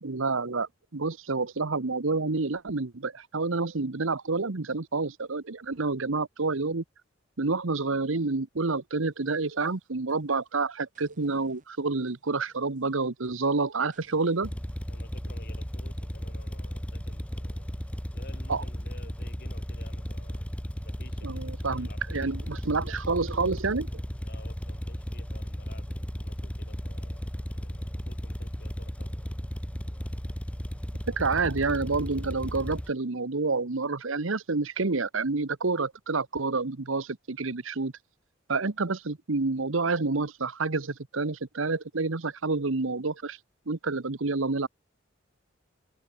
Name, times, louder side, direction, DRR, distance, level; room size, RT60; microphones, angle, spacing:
voice 1, 0.0-6.8 7.4-14.5 18.5-18.6 21.2-24.0 31.1-37.9 38.5-43.4 43.7-44.7, right 3 dB, 70° right, 1.1 m, -28 dB
sound 1, 9.1-10.5 10.9-14.5, right 2 dB, 40° right, 7.2 m, -64 dB
sound 2, 14.4-32.9, equal, 5° left, 1.1 m, -35 dB
voice 2, 14.9-17.7 18.1-20.4 20.8-22.4 22.7-22.9 24.2-29.1, left 2 dB, 50° left, 4.6 m, -53 dB
open air
head